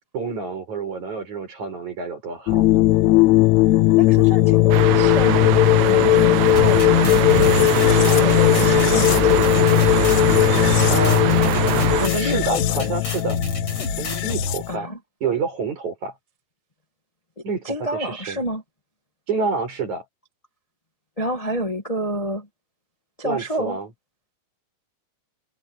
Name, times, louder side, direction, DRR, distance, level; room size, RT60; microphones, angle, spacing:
voice 1, 0.1-2.6 10.9-11.3 12.1-13.4 14.0-14.9 15.2-16.1 17.4-17.7 18.0-18.4 19.3-20.0 23.2-23.9, right 4 dB, 70° right, 7.8 m, -28 dB
sound 1, 2.5-14.8, left 16 dB, 75° left, 1.8 m, -17 dB
voice 2, 3.7-5.5 5.8-9.6 12.0-13.0 14.7-15.0 17.4-18.6 21.2-22.5 23.2-23.8, equal, 25° left, 0.8 m, -29 dB
sound 2, 4.7-12.1, right 13 dB, 85° right, 2.5 m, -23 dB
sound 3, 6.5-14.5, left 3 dB, 45° left, 6.2 m, -29 dB
omnidirectional pair, 3.5 m